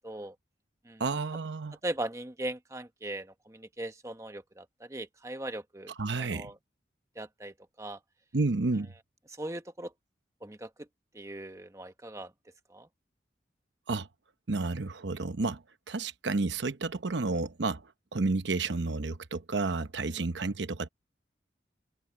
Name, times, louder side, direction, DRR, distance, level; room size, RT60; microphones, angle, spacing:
voice 1, 0.0-0.3 0.8-1.0 1.8-6.6 7.2-8.0 9.4-9.9 10.4-10.7 11.1-12.3 12.7-12.9 20.1-20.2, right 1 dB, 15° right, 1.2 m, -39 dB
voice 2, 1.0-1.8 6.0-6.5 8.3-8.9 13.9-14.1 14.5-15.6 15.9-17.8 18.1-20.9, right 3 dB, 80° right, 0.9 m, -31 dB
open air
head